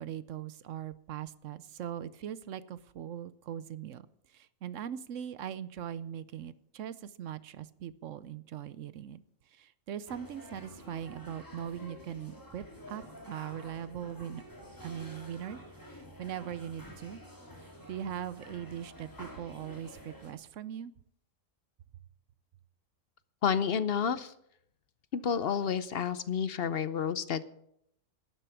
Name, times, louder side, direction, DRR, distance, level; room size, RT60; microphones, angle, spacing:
voice 1, 0.0-9.2 9.5-14.4 14.8-15.6 15.9-17.2 17.6-20.9, right 10 dB, 70° right, 16 dB, 1.0 m, -41 dB
sound 1, 10.1-20.3, equal, 15° left, 2.4 m, -49 dB
voice 2, 23.4-24.3 25.1-27.4, left 7 dB, 55° left, 14 dB, 0.8 m, -30 dB
12.0 x 10.0 x 7.0 m, 0.75 s
omnidirectional pair, 1.4 m